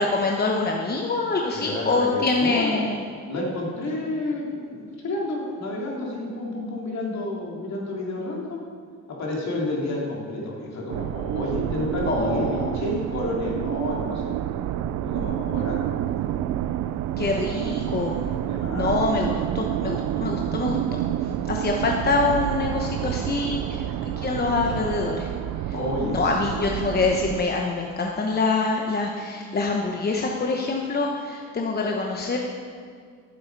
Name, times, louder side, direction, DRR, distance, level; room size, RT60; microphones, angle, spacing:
voice 1, 0.0-3.0 12.1-12.4 17.2-18.2 18.7-20.8 21.5-23.6 24.2-25.3 26.1-32.5, left 3 dB, 30° left, 1 dB, 1.0 m, -25 dB
voice 2, 1.5-2.8 3.3-8.6 9.1-14.3 15.0-15.8 18.5-18.9 25.7-26.4, left 2 dB, 60° left, -3 dB, 2.9 m, -30 dB
sound 1, 10.9-27.4, right 12 dB, 75° right, 0.5 m, -28 dB
12.0 x 7.8 x 4.7 m, 2.1 s
cardioid pair, 90°, 30 cm